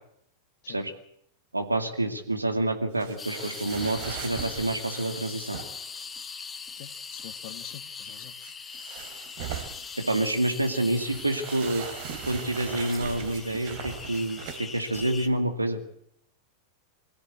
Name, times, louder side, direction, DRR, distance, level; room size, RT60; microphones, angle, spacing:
voice 1, 1.5-5.6 10.0-11.9 12.3-15.8, right 1 dB, 85° right, 6 dB, 2.3 m, -28 dB
sound 1, 3.0-5.9 8.4-10.0 10.5-15.2, right 9 dB, 50° right, 3.0 m, -40 dB
sound 2, 3.2-15.3, left 5 dB, 20° left, 1.5 m, -41 dB
voice 2, 6.7-8.3, left 13 dB, 50° left, 12 dB, 1.6 m, -46 dB
22.5 x 16.0 x 8.4 m, 0.71 s
figure-of-eight pair, 90°, 0 cm